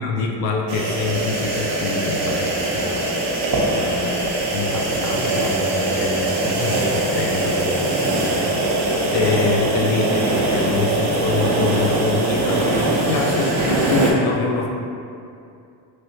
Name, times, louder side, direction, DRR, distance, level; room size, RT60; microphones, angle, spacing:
voice 1, 0.0-4.2 4.5-14.7, left 4 dB, 75° left, 0 dB, 0.5 m, -25 dB
sound 1, 0.7-14.1, right 2 dB, 60° right, 0.8 m, -22 dB
3.1 x 2.7 x 2.7 m, 2.5 s
supercardioid pair, 75°, 45 cm